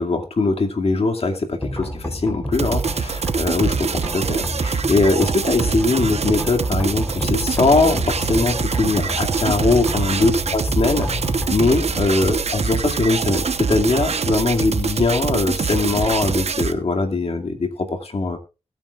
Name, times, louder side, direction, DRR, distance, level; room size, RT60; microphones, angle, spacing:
voice 1, 0.0-18.4, left 3 dB, 60° left, 2 dB, 2.4 m, -21 dB
sound 1, 1.6-15.5, left 1 dB, 15° left, 3.8 m, -31 dB
sound 2, 2.5-16.7, right 5 dB, 65° right, 1.1 m, -24 dB
21.0 x 9.2 x 2.5 m, 0.30 s
cardioid pair, 50°, 12 cm